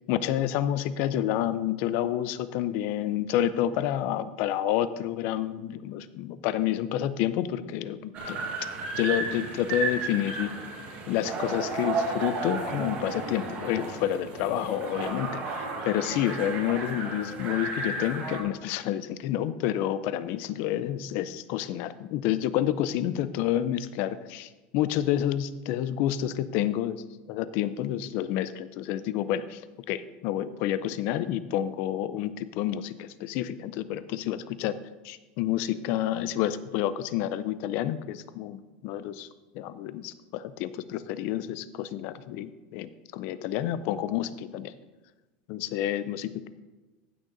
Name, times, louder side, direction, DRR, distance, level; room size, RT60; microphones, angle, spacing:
voice 1, 0.1-8.4 8.9-10.7 11.1-29.6 29.9-34.8 35.0-39.3 39.5-44.7 45.5-46.5, left 11 dB, 45° left, 14 dB, 0.5 m, -29 dB
sound 1, 8.1-18.4, right 3 dB, 30° right, 1.6 m, -33 dB
15.0 x 6.5 x 3.9 m, 1.2 s
supercardioid pair, 180°, 5 cm